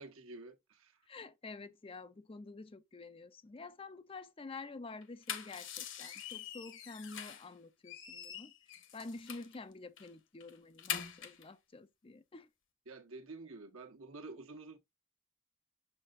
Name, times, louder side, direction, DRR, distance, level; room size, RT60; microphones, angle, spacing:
voice 1, 0.0-1.0 12.9-14.8, right 3 dB, 75° right, 1.3 m, -49 dB
voice 2, 1.1-12.5, left 3 dB, 25° left, 0.5 m, -49 dB
sound 1, 5.0-7.5 7.8-9.6 10.0-10.1 10.4-11.5, left 9 dB, 60° left, 1.2 m, -44 dB
6.7 x 6.5 x 2.5 m
head